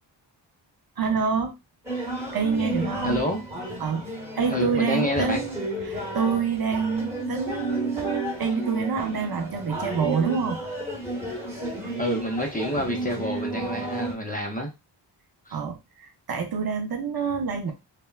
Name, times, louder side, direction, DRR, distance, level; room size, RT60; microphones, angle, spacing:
voice 1, 1.0-1.5 2.3-3.2 3.7-4.1 4.4-5.6 5.8-10.6 15.5-17.7, right 6 dB, 55° right, 4 dB, 0.6 m, -27 dB
sound 1, 1.9-14.2, right 1 dB, 5° right, 1.0 m, -32 dB
voice 2, 3.0-3.4 4.5-5.4 7.2-7.4 12.0-14.7 15.5-15.6, left 1 dB, 20° left, 0 dB, 0.5 m, -28 dB
3.2 x 2.1 x 2.3 m, 0.23 s
wide cardioid pair, 170°, 45 cm